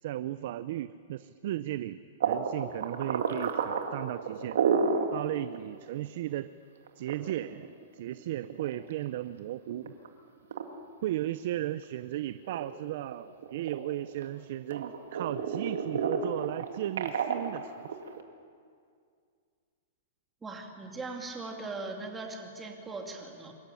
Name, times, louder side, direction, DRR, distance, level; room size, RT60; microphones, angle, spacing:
voice 1, 0.0-4.6 5.1-6.6 7.0-9.9 11.0-17.8, right 13 dB, 55° right, 14 dB, 0.6 m, -35 dB
sound 1, 2.2-5.1 5.5-5.6 6.0-6.1 6.9-9.2 9.7-10.1 10.5-10.6 11.2-12.1 12.4-14.3 14.7-18.2, right 6 dB, 80° right, 2.2 m, -31 dB
voice 2, 20.4-23.5, right 3 dB, 10° right, 1 dB, 2.6 m, -39 dB
24.5 x 14.0 x 10.0 m, 2.2 s
hypercardioid pair, 155°, 0 cm